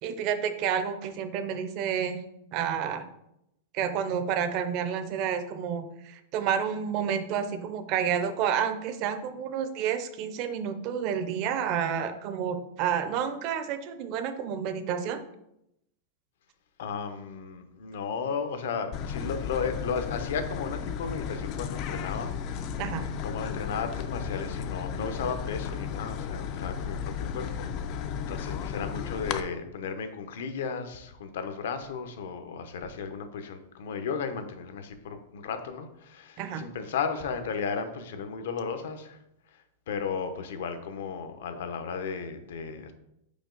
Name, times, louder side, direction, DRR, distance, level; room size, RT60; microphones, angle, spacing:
voice 1, 0.0-2.2 2.5-3.0 3.7-15.2 22.8-23.1 36.4-36.6, right 8 dB, 30° right, 9 dB, 0.5 m, -30 dB
voice 2, 16.8-22.6 23.2-27.7 28.3-39.2 39.5-42.9, left 5 dB, 65° left, 8 dB, 0.8 m, -34 dB
sound 1, 18.9-29.4, left 7 dB, 30° left, 0.3 m, -34 dB
5.1 x 5.0 x 3.8 m, 0.81 s
supercardioid pair, 175°, 0 cm